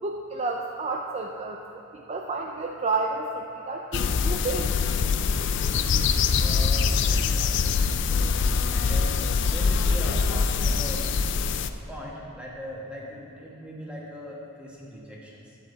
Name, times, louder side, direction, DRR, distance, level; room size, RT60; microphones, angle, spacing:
voice 1, 0.0-4.7, right 3 dB, 30° right, 1 dB, 0.4 m, -31 dB
Forrest field spring sounds, 3.9-11.7, left 5 dB, 55° left, 0.4 m, -24 dB
voice 2, 6.4-11.0 11.9-15.6, equal, 5° right, -4 dB, 1.5 m, -40 dB
11.5 x 8.3 x 4.0 m, 3.0 s
head